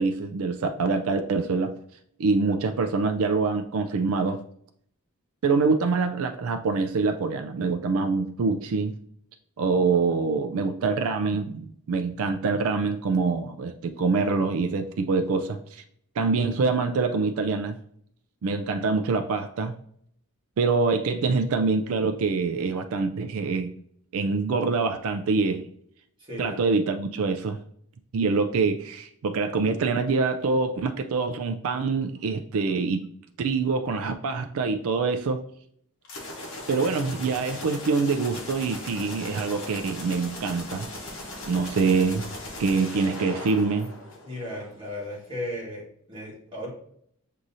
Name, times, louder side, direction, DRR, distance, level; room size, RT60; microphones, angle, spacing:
voice 1, 0.0-1.7 2.2-4.4 5.4-8.9 9.6-15.8 16.2-17.8 18.4-19.7 20.6-23.7 24.1-25.7 26.4-27.6 28.1-33.0 33.4-35.4 36.4-40.9 41.5-42.3 42.6-43.9, right 4 dB, 70° right, 6 dB, 0.4 m, -25 dB
voice 2, 26.2-26.6 44.2-46.7, left 1 dB, 20° right, -6 dB, 1.5 m, -36 dB
sound 1, 36.0-44.7, left 2 dB, 60° left, 1.0 m, -38 dB
6.1 x 2.8 x 2.6 m, 0.66 s
head